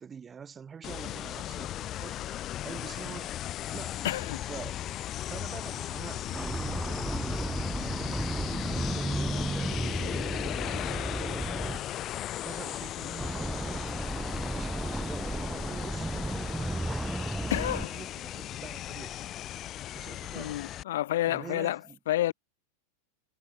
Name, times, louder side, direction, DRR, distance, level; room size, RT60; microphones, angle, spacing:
voice 1, 0.0-2.4 2.6-4.0 4.5-10.5 10.9-11.9 12.2-14.0 14.5-19.2 19.9-20.6 21.3-22.0, right 6 dB, 20° right, 1.4 m, -46 dB
sound 1, 0.8-20.8, left 12 dB, 30° left, 1.5 m, -37 dB
voice 2, 4.0-4.4 17.5-17.9 20.4-21.8 22.1-22.3, left 14 dB, 55° left, 0.7 m, -29 dB
sound 2, 6.3-11.8 13.2-17.9, right 1 dB, 5° right, 0.3 m, -33 dB
figure-of-eight pair, 90°, 0 cm